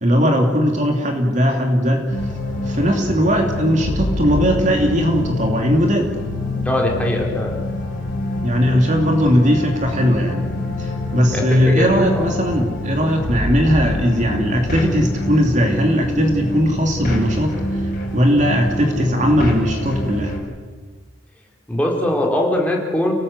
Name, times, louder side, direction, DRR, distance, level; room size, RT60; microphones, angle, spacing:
voice 1, 0.0-2.0 2.6-6.1 8.4-10.4 10.8-17.5 18.1-20.4, equal, 35° right, 3 dB, 2.8 m, -18 dB
sound 1, 2.1-20.4, left 1 dB, 45° left, 5.6 m, -26 dB
voice 2, 6.6-7.6 11.3-12.2 21.7-23.1, left 1 dB, 5° left, -1 dB, 3.8 m, -21 dB
29.5 x 18.5 x 8.2 m, 1.5 s
head